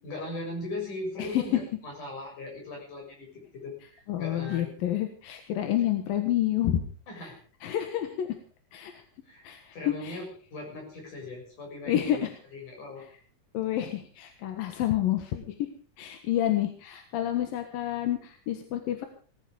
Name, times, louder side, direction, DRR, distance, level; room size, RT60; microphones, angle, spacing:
voice 1, 0.0-3.3 3.6-4.7 7.1-7.4 9.3-9.4 9.7-10.2 10.5-12.2 12.5-13.0, left 2 dB, 65° left, 1 dB, 8.2 m, -38 dB
voice 2, 4.1-6.8 7.2-7.3 7.6-8.3 8.7-9.0 9.4-10.2 11.9-12.3 13.5-15.7 16.0-19.1, left 12 dB, 90° left, 6 dB, 3.2 m, -29 dB
18.5 x 13.5 x 5.1 m, 0.41 s
omnidirectional pair, 4.0 m